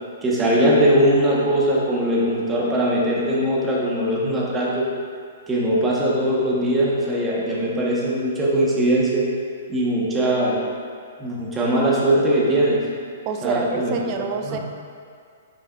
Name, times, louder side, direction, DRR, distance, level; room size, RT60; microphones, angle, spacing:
voice 1, 0.2-4.9 5.5-9.2 9.7-10.6 11.2-12.8 13.4-14.1 14.4-14.6, right 1 dB, 15° right, -5 dB, 1.3 m, -20 dB
voice 2, 13.2-14.6, right 5 dB, 35° right, 4 dB, 0.5 m, -27 dB
6.8 x 5.8 x 2.5 m, 2.2 s
figure-of-eight pair, 120°, 0 cm